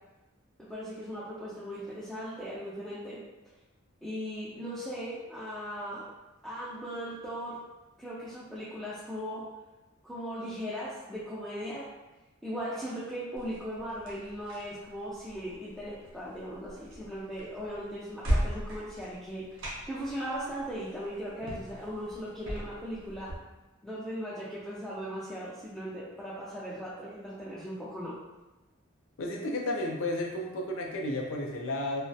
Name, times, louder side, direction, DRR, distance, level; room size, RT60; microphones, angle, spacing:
voice 1, 0.6-3.2 4.0-6.0 6.4-7.6 8.0-9.4 10.0-11.9 12.4-19.4 19.9-23.3 23.8-28.1, equal, ahead, -10 dB, 0.3 m, -38 dB
sound 1, 13.4-23.4, equal, 70° right, 0.6 m, -38 dB
voice 2, 29.2-32.0, left 1 dB, 70° left, 0 dB, 0.4 m, -32 dB
2.3 x 2.0 x 2.6 m, 1.0 s
head